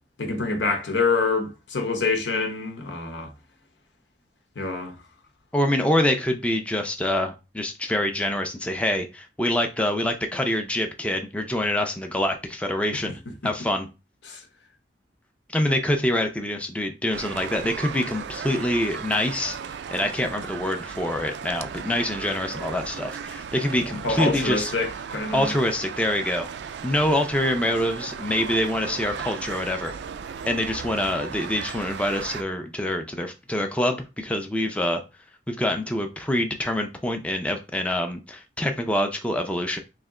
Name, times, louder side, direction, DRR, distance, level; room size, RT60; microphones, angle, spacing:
voice 1, 0.2-3.3 4.6-5.0 14.3-14.4 24.0-25.5, left 3 dB, 90° left, 0.9 m, -26 dB
voice 2, 5.5-13.9 15.5-24.7 25.3-26.5 26.8-29.9 30.4-35.0 35.5-39.8, left 1 dB, 5° left, 0.4 m, -25 dB
sound 1, 17.1-32.4, right 7 dB, 70° right, 0.3 m, -36 dB
3.2 x 2.9 x 3.6 m
head